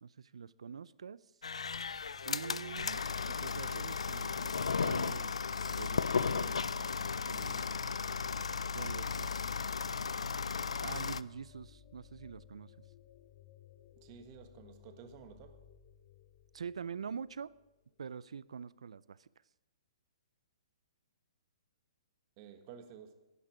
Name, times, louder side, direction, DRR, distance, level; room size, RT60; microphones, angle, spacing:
voice 1, 0.0-1.2 2.2-3.0 3.3-5.3 5.8-7.7 8.7-9.3 10.8-12.7 16.5-17.5 18.0-19.3, right 6 dB, 75° right, 0.4 m, -45 dB
sound 1, 1.4-11.2, left 5 dB, 85° left, 0.4 m, -35 dB
sound 2, 1.5-17.8, left 10 dB, 45° left, 0.9 m, -59 dB
voice 2, 14.0-15.6 22.4-23.1, right 7 dB, 35° right, 1.5 m, -52 dB
11.5 x 10.0 x 6.0 m
hypercardioid pair, 135°, 3 cm